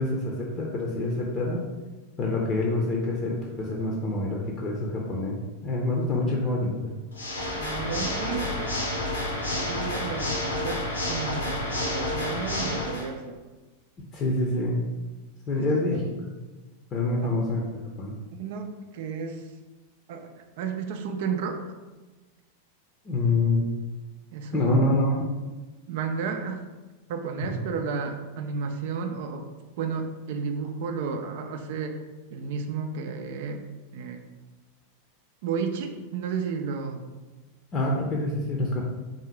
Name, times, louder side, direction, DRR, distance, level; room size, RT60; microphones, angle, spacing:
voice 1, 0.0-1.6 2.2-5.3 5.6-6.9 14.1-14.8 15.5-16.0 16.9-18.1 23.0-23.7 24.5-25.3 27.4-27.5 37.7-38.8, left 2 dB, 25° left, -1 dB, 0.7 m, -26 dB
Water / Mechanisms, 7.1-13.1, left 1 dB, 75° left, 0.9 m, -30 dB
voice 2, 7.6-8.8 9.5-13.4 15.5-16.0 17.2-17.3 18.3-19.4 20.1-21.6 24.3-24.9 25.9-26.6 27.1-29.5 29.8-32.0 32.3-33.6 33.9-34.2 35.4-37.0, right 5 dB, 50° right, 5 dB, 0.5 m, -32 dB
3.6 x 2.7 x 4.6 m, 1.2 s
figure-of-eight pair, 90°, 0 cm